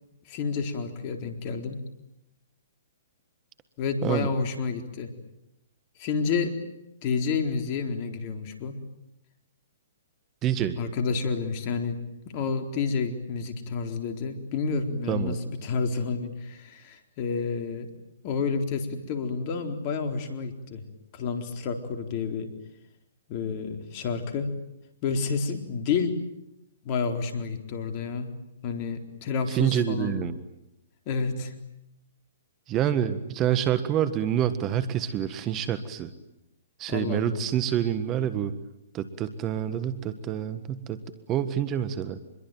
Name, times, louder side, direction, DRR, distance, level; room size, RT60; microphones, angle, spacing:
voice 1, 0.3-1.8 3.8-5.1 6.0-6.6 7.0-8.8 10.8-17.9 18.2-20.8 21.1-22.5 23.3-24.5 25.0-26.2 26.8-28.3 28.6-30.2 31.1-31.5 36.9-37.4, left 5 dB, 40° left, 5 dB, 4.1 m, -29 dB
voice 2, 10.4-10.8 15.1-15.4 29.5-30.4 32.7-36.1 36.8-38.5 38.9-41.0 41.3-42.2, right 10 dB, 25° right, 12 dB, 1.6 m, -27 dB
26.5 x 22.0 x 9.3 m, 0.86 s
hypercardioid pair, 130°, 0 cm